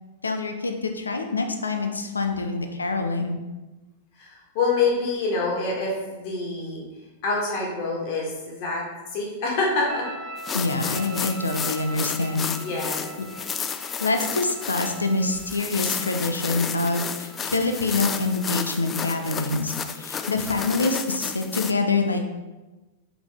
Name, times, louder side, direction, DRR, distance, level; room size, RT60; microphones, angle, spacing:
voice 1, 0.2-3.3 10.5-12.5 14.0-22.3, left 3 dB, 75° left, 5 dB, 0.7 m, -26 dB
voice 2, 4.2-6.8 7.2-8.8 9.1-10.1 12.5-13.1, left 3 dB, 45° left, -2 dB, 1.8 m, -26 dB
sound 1, 9.9-19.9, right 2 dB, 20° right, 0.6 m, -44 dB
sound 2, 10.4-21.7, left 7 dB, 20° left, 0.3 m, -32 dB
5.2 x 5.0 x 3.6 m, 1.1 s
figure-of-eight pair, 95°, 0 cm